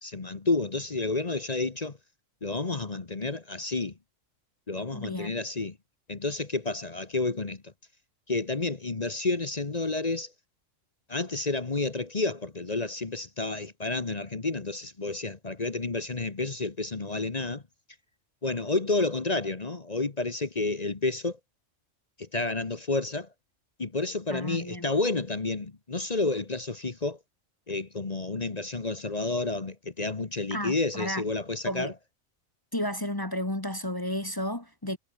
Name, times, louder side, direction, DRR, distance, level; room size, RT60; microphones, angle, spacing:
voice 1, 0.0-2.0 2.4-4.0 4.7-5.8 6.1-7.7 8.3-10.3 11.1-17.6 18.4-21.4 22.2-23.3 23.8-27.2 27.7-31.9, left 3 dB, 30° left, 1.3 m, -30 dB
voice 2, 4.9-5.3 24.3-24.8 30.5-31.2 31.7-31.9 32.7-35.0, left 1 dB, 15° left, 1.6 m, -32 dB
omnidirectional pair, 1.4 m